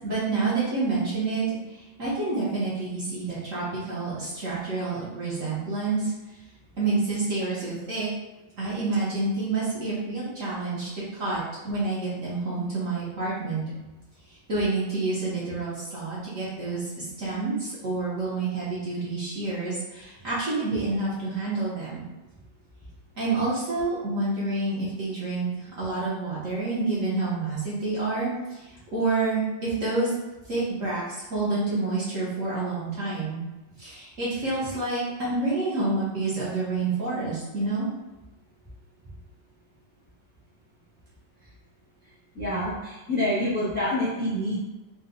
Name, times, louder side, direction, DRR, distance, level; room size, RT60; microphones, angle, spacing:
voice 1, 0.0-6.1 6.8-8.1 8.6-13.6 14.5-22.0 23.1-30.1 30.5-33.4 33.8-37.9, right 3 dB, 50° right, -9 dB, 1.2 m, -28 dB
voice 2, 42.3-44.6, left 1 dB, 5° left, -10 dB, 0.8 m, -27 dB
4.3 x 2.2 x 2.5 m, 1.0 s
omnidirectional pair, 2.0 m